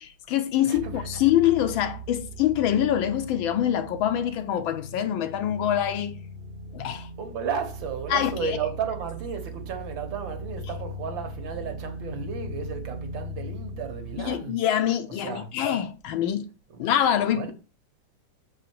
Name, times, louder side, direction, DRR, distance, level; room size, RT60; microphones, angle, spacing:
voice 1, 0.0-6.1 6.7-7.1 8.1-8.6 14.2-16.5 16.8-17.5, left 10 dB, 75° left, 1.3 m, -25 dB
voice 2, 0.6-1.1 7.2-14.6 15.2-15.5 16.7-16.9 17.3-17.5, right 6 dB, 65° right, 1.8 m, -33 dB
sound 1, 0.7-14.3, right 1 dB, 40° right, 0.8 m, -39 dB
6.9 x 5.0 x 4.5 m
omnidirectional pair, 2.4 m